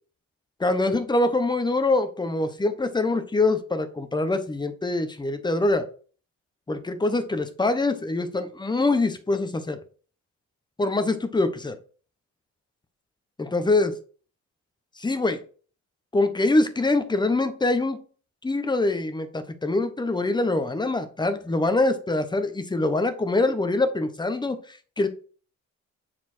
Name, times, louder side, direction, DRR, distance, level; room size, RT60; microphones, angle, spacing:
voice 1, 0.6-5.8 6.7-9.8 10.8-11.8 13.4-14.0 15.0-15.4 16.1-18.0 18.4-25.1, left 2 dB, 15° left, 9 dB, 1.0 m, -24 dB
7.0 x 4.4 x 4.4 m, 0.40 s
cardioid pair, 90°, 30 cm